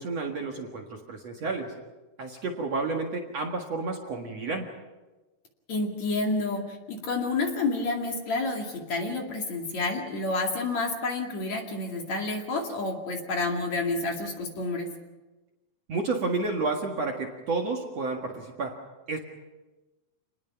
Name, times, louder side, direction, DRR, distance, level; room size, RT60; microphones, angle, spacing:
voice 1, 0.0-1.7 2.2-4.7 15.9-18.8 19.1-19.2, right 3 dB, 50° right, 1 dB, 2.4 m, -31 dB
voice 2, 5.7-14.9, left 3 dB, 50° left, 1 dB, 3.4 m, -29 dB
28.5 x 20.0 x 5.8 m, 1.1 s
omnidirectional pair, 4.6 m